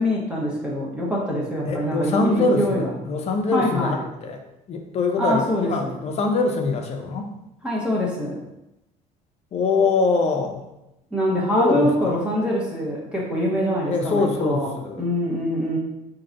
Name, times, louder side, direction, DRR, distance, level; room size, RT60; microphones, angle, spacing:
voice 1, 0.0-2.8 3.5-4.0 5.2-5.9 7.6-8.4 11.1-14.7 15.0-15.8, equal, 5° right, -5 dB, 0.8 m, -24 dB
voice 2, 1.7-4.4 4.7-7.3 9.5-10.6 11.5-12.1 13.8-15.0, left 3 dB, 40° left, 4 dB, 0.6 m, -23 dB
3.8 x 2.3 x 3.8 m, 0.88 s
cardioid pair, 125°, 16 cm